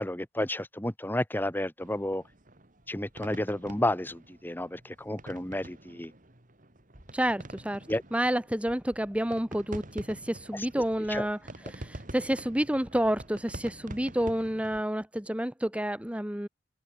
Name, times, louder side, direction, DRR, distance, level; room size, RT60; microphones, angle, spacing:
voice 1, 0.0-2.2 2.9-6.1 7.9-8.0 10.5-10.6 11.1-11.3, left 1 dB, 10° left, 1.5 m, -31 dB
sound 1, 1.8-14.8, right 1 dB, 45° right, 3.1 m, -46 dB
voice 2, 7.1-11.4 11.7-16.5, right 1 dB, 5° right, 1.1 m, -29 dB
open air
head